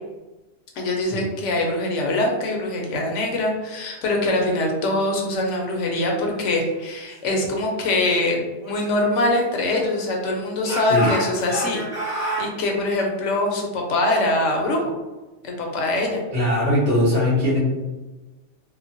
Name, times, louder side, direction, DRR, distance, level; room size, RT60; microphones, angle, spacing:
voice 1, 0.8-14.8 15.4-16.2, left 2 dB, 75° left, 1 dB, 0.9 m, -23 dB
Speech / Shout, 8.6-10.2 10.6-12.5, right 1 dB, 35° right, 1.3 m, -30 dB
voice 2, 16.3-17.6, left 1 dB, 65° right, -9 dB, 1.3 m, -20 dB
3.1 x 2.1 x 2.5 m, 1.1 s
omnidirectional pair, 1.3 m